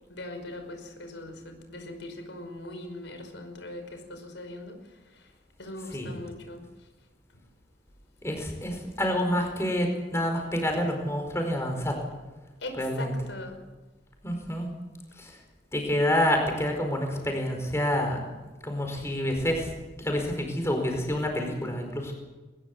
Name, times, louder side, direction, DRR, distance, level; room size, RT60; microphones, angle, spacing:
voice 1, 0.1-4.8 5.1-5.3 5.6-6.6 12.6-13.6, left 1 dB, 90° left, 6 dB, 5.4 m, -40 dB
voice 2, 8.2-12.0 12.8-13.1 14.2-14.7 15.2-15.4 15.7-18.2 18.6-19.7 20.0-22.1, left 1 dB, 15° left, 3 dB, 4.8 m, -28 dB
21.0 x 20.5 x 8.0 m, 1.2 s
head